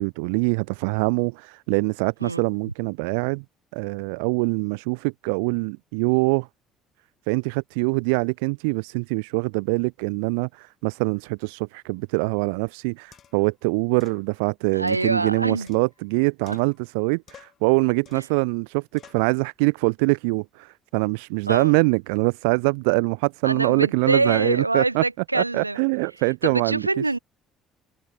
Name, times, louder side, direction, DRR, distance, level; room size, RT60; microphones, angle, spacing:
voice 1, 0.0-3.4 3.7-6.5 7.3-25.0 25.3-26.9, right 33 dB, 65° right, 0.6 m, -24 dB
sound 1, 12.4-12.5 13.1-13.5 14.0-14.2 14.9-16.1 16.5-17.0 17.3-17.7 18.1-18.4 19.0-19.3, left 9 dB, 45° left, 7.3 m, -52 dB
voice 2, 14.7-15.7 16.5-16.6 21.5-21.7 23.4-25.8 26.4-27.2, right 2 dB, 90° right, 1.1 m, -25 dB
figure-of-eight pair, 55°, 0 cm